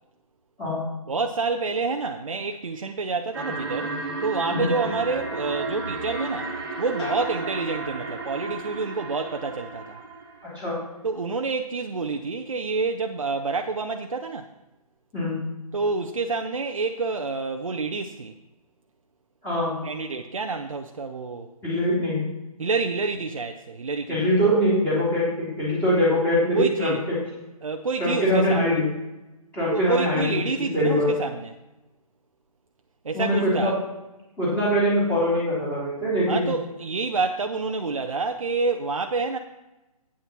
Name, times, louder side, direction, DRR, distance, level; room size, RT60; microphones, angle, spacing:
voice 1, 1.1-4.0 4.2-6.5 6.8-10.0 11.0-14.5 15.7-18.3 19.8-21.5 22.6-24.3 26.5-27.0 27.6-28.7 29.7-31.5 33.0-33.7 36.3-39.4, right 4 dB, 60° right, 5 dB, 0.6 m, -28 dB
sound 1, 3.3-10.5, right 3 dB, 30° right, 1.4 m, -32 dB
sound 2, 7.0-8.7 9.1-9.7, left 3 dB, 50° left, 3.2 m, -41 dB
voice 2, 19.4-19.8 21.6-22.3 24.1-27.2 28.0-28.8 29.5-30.2 30.6-31.1 33.1-33.7 34.4-36.5, equal, 10° left, -9 dB, 2.9 m, -23 dB
8.7 x 7.0 x 5.8 m, 1.0 s
figure-of-eight pair, 140°, 19 cm